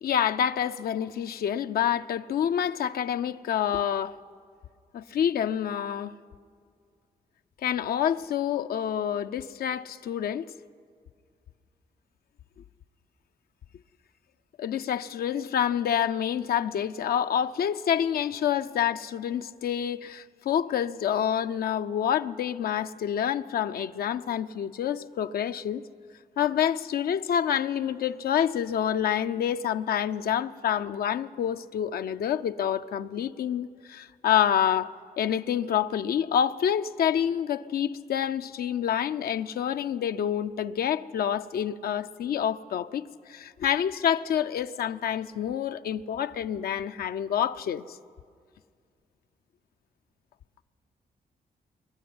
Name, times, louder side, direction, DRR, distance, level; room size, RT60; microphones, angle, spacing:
voice 1, 0.0-4.2 4.9-6.1 7.6-10.5 14.6-25.8 26.4-48.0, left 9 dB, 75° left, 0.6 m, -27 dB
23.5 x 12.0 x 9.6 m
cardioid pair, 80°, 16 cm